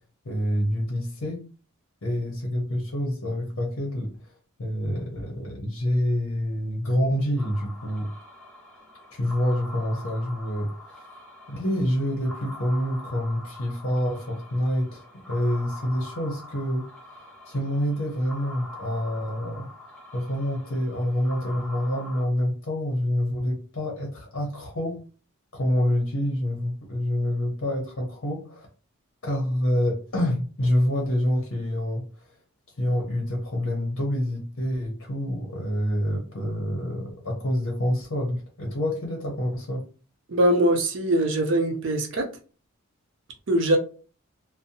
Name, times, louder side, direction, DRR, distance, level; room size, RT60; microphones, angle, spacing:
voice 1, 0.2-1.4 2.0-4.1 4.6-8.1 9.1-11.1 11.5-16.9 17.5-19.7 20.1-25.0 25.5-28.7 29.2-32.0 32.8-39.8, left 1 dB, 65° left, 0.7 m, -27 dB
sound 1, 7.4-22.3, left 1 dB, 5° left, 0.5 m, -44 dB
voice 2, 40.3-42.3 43.5-43.8, right 1 dB, 55° right, 0.6 m, -22 dB
2.6 x 2.1 x 2.7 m
head